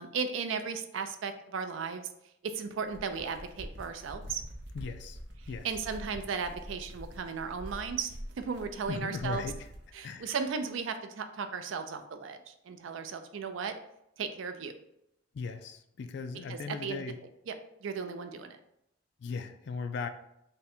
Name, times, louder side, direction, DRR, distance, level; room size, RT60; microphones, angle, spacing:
voice 1, 0.0-2.1 2.4-4.4 5.6-9.5 9.9-13.8 14.2-14.8 16.5-17.1 17.5-17.6 17.8-18.6, right 5 dB, 75° right, 8 dB, 0.4 m, -36 dB
sound 1, 2.7-9.9, equal, 60° right, 0.8 m, -45 dB
voice 2, 4.7-5.2 5.5-5.7 8.9-9.7 10.0-10.3 15.3-17.2 19.2-20.1, left 4 dB, 60° left, 8 dB, 0.3 m, -37 dB
3.6 x 2.2 x 4.2 m, 0.80 s
head